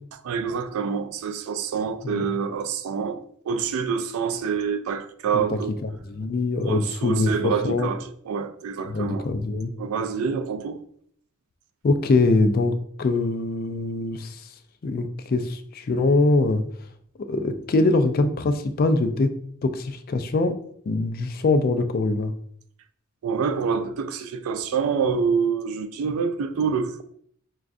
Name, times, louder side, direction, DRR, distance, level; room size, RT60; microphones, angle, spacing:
voice 1, 0.2-5.8 6.7-9.3 9.8-10.8 23.2-27.0, right 6 dB, 90° right, 0.3 m, -27 dB
voice 2, 5.3-7.9 8.9-9.7 11.8-14.4 14.8-16.6 17.3-19.3 19.6-22.3, left 2 dB, 45° left, 0.3 m, -23 dB
4.9 x 2.3 x 2.5 m
head